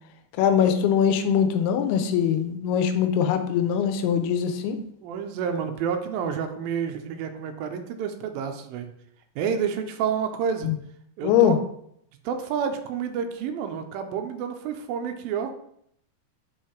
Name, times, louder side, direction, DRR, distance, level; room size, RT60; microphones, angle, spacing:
voice 1, 0.4-4.8 10.6-10.8 11.2-11.6, left 8 dB, 85° left, 8 dB, 2.6 m, -22 dB
voice 2, 5.0-8.9 9.4-10.7 11.2-11.5 12.2-15.5, right 7 dB, 80° right, 6 dB, 2.2 m, -29 dB
5.7 x 4.6 x 4.5 m, 0.71 s
omnidirectional pair, 4.5 m